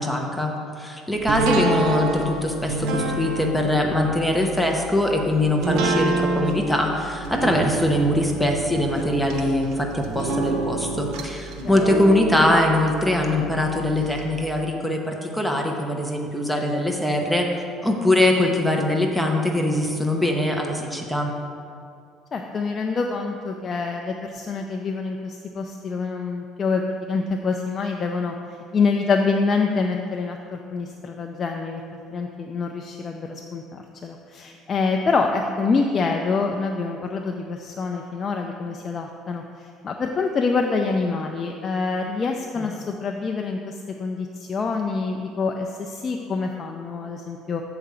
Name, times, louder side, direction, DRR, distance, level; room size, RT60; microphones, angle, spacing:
voice 1, 0.0-17.5 17.8-21.3 42.6-42.7, left 1 dB, ahead, 1 dB, 0.8 m, -22 dB
sound 1, 1.3-14.2 14.6-14.7, right 2 dB, 75° right, 0.9 m, -28 dB
voice 2, 1.4-1.8 11.6-11.7 22.3-26.8 27.1-28.3 28.7-31.8 32.1-47.6, left 4 dB, 30° left, 2 dB, 0.5 m, -26 dB
7.6 x 4.9 x 6.8 m, 2.3 s
cardioid pair, 140°, 0 cm